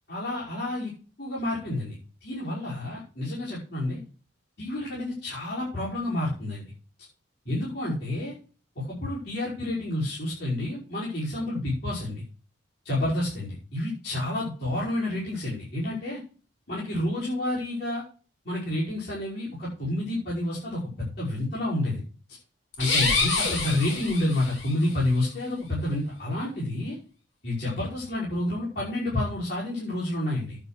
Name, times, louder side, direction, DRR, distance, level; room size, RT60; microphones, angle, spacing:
voice 1, 0.1-0.9 1.2-2.0 2.2-4.0 4.6-6.6 7.5-8.3 8.8-12.2 12.8-16.2 16.7-18.0 18.4-22.0 22.8-27.0 27.4-30.6, left 1 dB, 60° left, -8 dB, 5.8 m, -29 dB
sound 1, 22.7-24.7, left 4 dB, 75° left, 4.6 m, -26 dB
9.6 x 8.7 x 6.7 m, 0.38 s
head